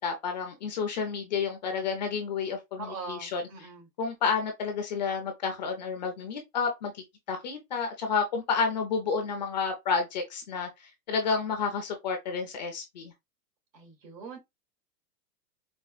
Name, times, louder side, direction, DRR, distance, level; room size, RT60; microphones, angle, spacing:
voice 1, 0.0-3.4 4.0-13.1, left 5 dB, 30° left, 0.4 m, -30 dB
voice 2, 2.8-3.9 13.7-14.4, right 4 dB, 85° right, 2.1 m, -41 dB
4.3 x 2.1 x 2.3 m
hypercardioid pair, 140°, 50 cm